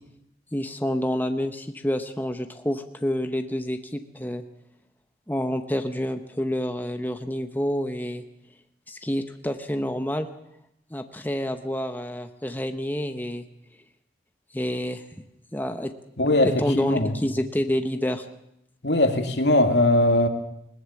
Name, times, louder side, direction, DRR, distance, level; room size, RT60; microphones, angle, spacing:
voice 1, 0.5-4.4 5.3-8.2 8.9-10.3 10.9-13.4 14.5-15.0 15.5-15.9 16.4-18.3, equal, 10° left, 7 dB, 0.9 m, -28 dB
voice 2, 16.2-17.1 18.8-20.3, left 1 dB, 80° left, 6 dB, 2.2 m, -20 dB
21.0 x 19.0 x 7.1 m, 0.78 s
head